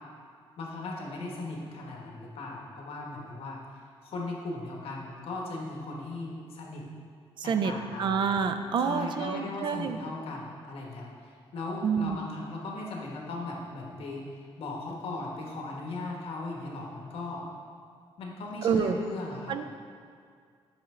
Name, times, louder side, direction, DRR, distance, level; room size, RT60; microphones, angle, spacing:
voice 1, 0.6-6.8 7.4-8.2 8.8-14.2 14.6-17.4 18.2-19.6, left 2 dB, 70° left, -1 dB, 1.4 m, -38 dB
voice 2, 7.4-10.0 11.8-12.2 18.6-19.0 19.5-19.6, right 6 dB, 50° right, 8 dB, 0.4 m, -28 dB
8.7 x 5.6 x 3.7 m, 2.1 s
wide cardioid pair, 165°, 10 cm